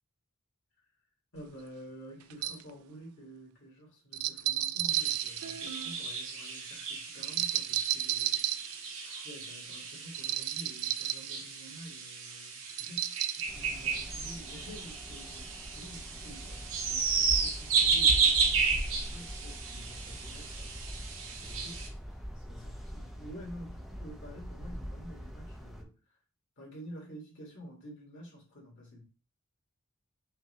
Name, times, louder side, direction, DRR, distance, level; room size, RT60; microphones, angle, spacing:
voice 1, 1.3-8.7 9.0-20.7 21.4-26.0 26.6-29.0, equal, 60° left, 2.2 m, -49 dB
sound 1, 1.4-1.5 2.3-2.6 4.1-6.0 7.2-8.8 10.1-11.3 12.7-13.4, right 13 dB, 85° right, 0.3 m, -32 dB
sound 2, 4.9-21.9, right 5 dB, 65° right, 1.1 m, -33 dB
sound 3, 13.5-25.8, equal, ahead, 0.5 m, -42 dB
5.7 x 2.7 x 3.2 m
head